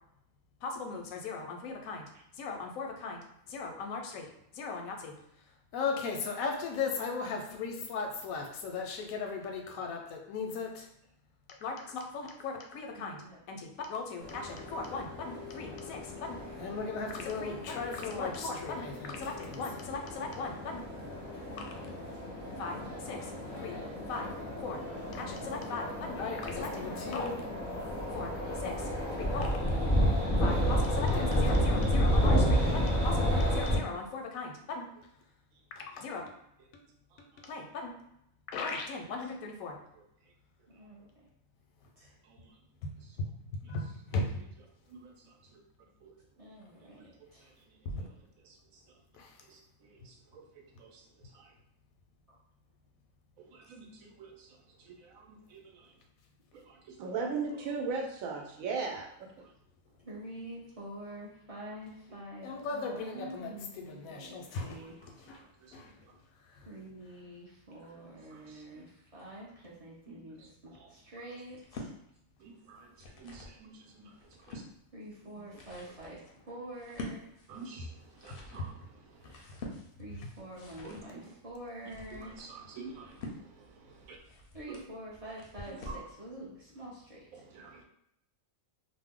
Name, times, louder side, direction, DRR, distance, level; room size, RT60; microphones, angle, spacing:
voice 1, 0.6-2.1 2.3-4.3 4.5-5.1 5.7-10.9 11.6-13.2 13.5-20.8 21.6-21.8 22.6-23.3 23.6-23.8 24.1-24.3 24.6-24.8 25.1-27.4 28.1-28.9 29.1-29.7 30.4-34.9 35.8-36.2 37.4-37.9 38.5-39.8 42.8-44.4 47.8-48.1 49.1-49.4 62.4-63.5 63.8-64.8 65.3-65.4 65.7-65.9 66.6-66.7, left 4 dB, 90° left, 3 dB, 1.0 m, -38 dB
voice 2, 12.9-13.4 33.4-34.0 40.7-41.3 42.0-42.2 46.4-47.5 52.3-52.4 53.6-53.8 60.0-65.0 66.6-71.9 74.9-77.2 80.0-82.4 84.2-87.5, right 1 dB, 40° right, -6 dB, 0.5 m, -47 dB
sound 1, 14.2-33.8, equal, 10° left, 0.5 m, -31 dB
voice 3, 44.9-45.4 46.0-46.1 46.8-46.9 47.2-47.3 47.6-47.8 48.4-48.8 49.5-50.4 50.7-51.5 53.4-55.9 56.5-59.5 65.6-65.9 68.3-68.8 70.1-70.2 72.4-74.6 75.4-75.5 77.5-79.4 80.8-81.2 82.1-84.2 84.7-84.8 85.9-86.0 87.3-87.8, right 4 dB, 85° right, 1 dB, 1.0 m, -43 dB
sound 2, 71.5-71.9 72.7-73.6 74.1-74.7 75.3-86.1, left 2 dB, 60° left, 0.6 m, -47 dB
2.6 x 2.1 x 3.5 m, 0.77 s
omnidirectional pair, 1.4 m